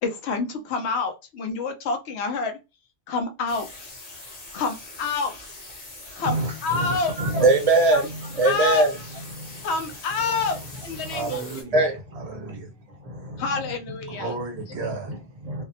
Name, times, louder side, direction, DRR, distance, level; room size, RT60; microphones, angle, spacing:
voice 1, 0.0-2.6 3.1-3.7 4.5-5.3 6.2-6.4 6.6-7.1 7.9-8.0 8.4-8.9 9.6-11.4 13.4-14.3, left 4 dB, 85° left, 0.8 m, -27 dB
sound 1, 3.5-11.6, left 2 dB, 40° left, 0.9 m, -42 dB
voice 2, 6.2-8.9 9.3-9.5 11.0-11.1 11.7-12.3 13.0-13.4 15.4-15.6, right 2 dB, 40° right, 0.6 m, -22 dB
voice 3, 11.1-11.9 12.1-12.7 14.1-15.3, right 4 dB, 80° right, 1.1 m, -33 dB
2.7 x 2.0 x 2.6 m
omnidirectional pair, 1.1 m